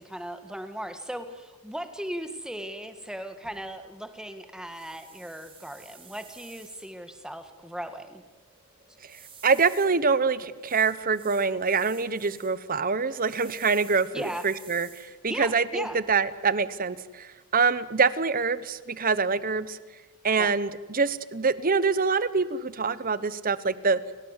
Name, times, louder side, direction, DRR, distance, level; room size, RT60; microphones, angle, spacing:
voice 1, 0.0-8.2 14.1-14.5 15.3-16.0 20.4-20.5, equal, 5° right, 8 dB, 1.6 m, -37 dB
sound 1, 3.4-16.4, right 6 dB, 25° right, 4.6 m, -53 dB
voice 2, 9.4-19.8 20.2-24.0, right 4 dB, 40° right, 16 dB, 1.0 m, -25 dB
29.5 x 18.0 x 8.2 m, 1.3 s
head